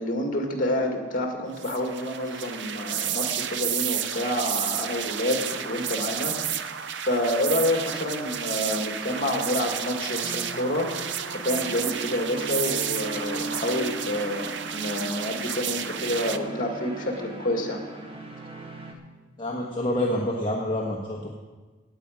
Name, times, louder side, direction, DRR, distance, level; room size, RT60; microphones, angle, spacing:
voice 1, 0.0-6.4 6.6-6.7 7.0-10.9 11.3-17.9, left 1 dB, 45° left, 3 dB, 2.0 m, -28 dB
sound 1, 1.6-16.4, right 9 dB, 60° right, 0.6 m, -31 dB
sound 2, 10.2-18.9, right 2 dB, 30° right, 1.4 m, -39 dB
voice 2, 19.4-21.3, left 1 dB, 25° left, -3 dB, 1.3 m, -27 dB
18.0 x 8.8 x 5.2 m, 1.3 s
head